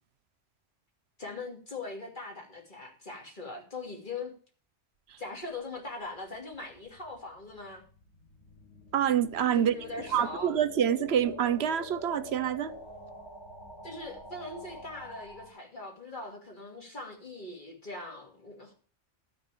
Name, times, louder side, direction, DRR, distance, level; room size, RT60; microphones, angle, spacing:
voice 1, 1.2-4.3 5.2-7.8 9.6-10.5 13.8-18.7, left 3 dB, 45° left, 2.7 m, -41 dB
sound 1, 6.3-15.5, left 1 dB, 75° left, 3.2 m, -46 dB
voice 2, 8.9-9.7 10.1-12.7, right 9 dB, 70° right, 0.9 m, -26 dB
12.5 x 4.5 x 8.2 m
omnidirectional pair, 1.2 m